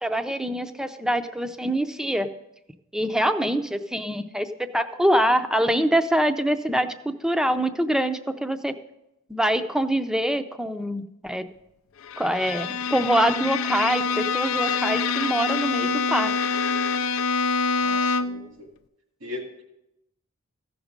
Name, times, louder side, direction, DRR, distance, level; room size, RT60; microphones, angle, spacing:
voice 1, 0.0-2.3 2.9-4.5 4.7-8.7 9.3-11.4 12.2-16.3, right 1 dB, 5° right, 9 dB, 0.5 m, -24 dB
Bowed string instrument, 12.0-18.5, left 5 dB, 85° left, 0.5 m, -26 dB
voice 2, 17.8-18.7 19.2-19.6, left 2 dB, 85° right, 1 dB, 2.5 m, -38 dB
15.0 x 6.1 x 5.2 m, 0.86 s
head